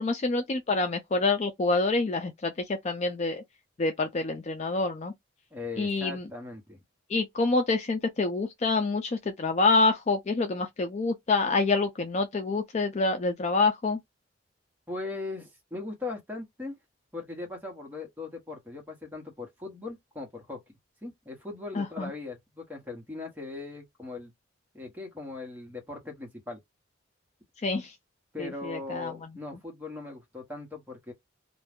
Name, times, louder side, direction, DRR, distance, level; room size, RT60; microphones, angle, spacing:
voice 1, 0.0-3.4 3.8-5.1 5.8-6.3 7.1-14.0 21.7-22.1 27.6-27.9 28.4-29.1, left 3 dB, 35° left, 0.4 m, -27 dB
voice 2, 5.5-6.8 14.9-16.8 17.1-20.6 21.0-24.3 24.7-26.6 28.3-31.1, left 3 dB, 10° right, 0.9 m, -39 dB
2.5 x 2.2 x 3.4 m
head